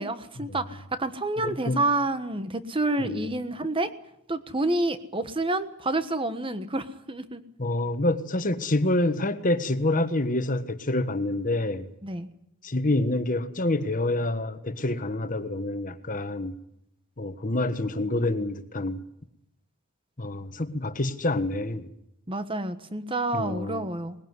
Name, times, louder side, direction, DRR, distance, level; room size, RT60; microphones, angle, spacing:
voice 1, 0.0-3.9 4.3-7.4 12.0-12.3 22.3-24.2, right 2 dB, 25° right, 1.3 m, -28 dB
voice 2, 1.4-1.8 3.0-3.3 7.6-11.9 12.6-16.5 17.2-19.0 20.2-21.9 23.3-23.9, left 2 dB, 40° left, 1.5 m, -27 dB
20.5 x 20.5 x 9.7 m
head